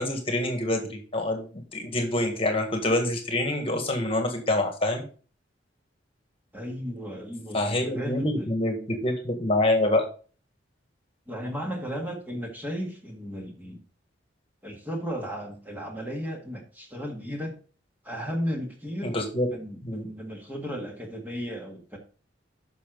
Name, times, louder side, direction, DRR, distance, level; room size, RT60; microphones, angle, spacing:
voice 1, 0.0-5.0 7.5-10.1 19.0-19.5 19.8-20.1, left 1 dB, 30° left, 4 dB, 1.7 m, -26 dB
voice 2, 6.5-8.5 11.3-13.8 14.6-17.5 18.0-19.2 19.5-22.0, equal, 10° right, 1 dB, 1.8 m, -35 dB
10.0 x 6.3 x 4.0 m, 0.38 s
head